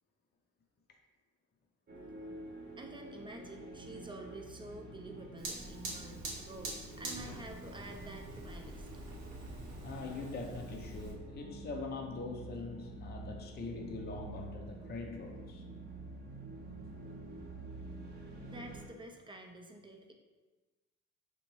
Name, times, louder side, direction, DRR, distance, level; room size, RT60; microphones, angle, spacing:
sound 1, 1.9-18.9, right 2 dB, 30° right, 0.9 m, -48 dB
voice 1, 2.8-8.9 18.4-20.1, right 1 dB, 15° right, 2 dB, 0.5 m, -49 dB
Fire, 5.4-11.1, right 2 dB, 85° right, 1.0 m, -45 dB
voice 2, 9.8-15.6, left 3 dB, 35° left, 2 dB, 0.5 m, -43 dB
4.3 x 2.7 x 3.1 m, 1.3 s
cardioid pair, 90°, 30 cm